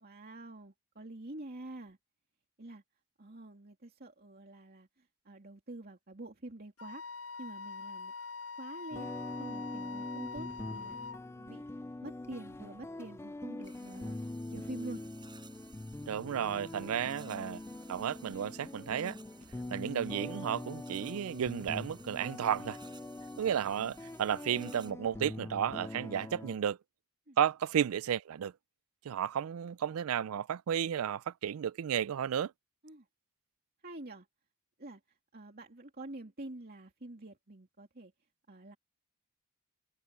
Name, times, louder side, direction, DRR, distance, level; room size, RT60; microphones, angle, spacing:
voice 1, 0.0-2.0 2.6-2.8 3.2-7.1 7.4-8.1 8.6-9.1 9.4-11.0 11.3-11.6 12.0-14.2 14.5-15.0 27.3-27.4 32.8-33.1 33.8-34.3 34.8-38.1 38.5-38.8, right 1 dB, 45° right, 2.6 m, -47 dB
Wind instrument woodwind instrument, 6.8-11.2, left 4 dB, 90° left, 1.7 m, -44 dB
sound 1, 8.9-26.6, left 2 dB, 10° left, 0.3 m, -43 dB
sound 2, 13.6-24.9, right 5 dB, 20° right, 6.9 m, -59 dB
voice 2, 16.1-17.6 17.9-19.2 19.7-22.8 23.4-26.8 27.4-28.5 29.0-32.5, right 9 dB, 75° right, 0.4 m, -33 dB
head